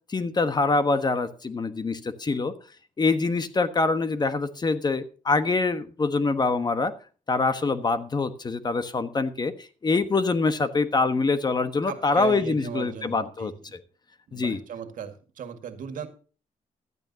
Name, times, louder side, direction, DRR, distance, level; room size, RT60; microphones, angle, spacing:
voice 1, 0.1-2.5 3.0-6.9 7.3-13.5 14.3-14.6, left 3 dB, 30° left, 11 dB, 1.2 m, -25 dB
voice 2, 11.8-13.5 14.3-16.1, right 7 dB, 75° right, 8 dB, 1.9 m, -37 dB
15.5 x 12.0 x 2.8 m, 0.37 s
cardioid pair, 100°, 14 cm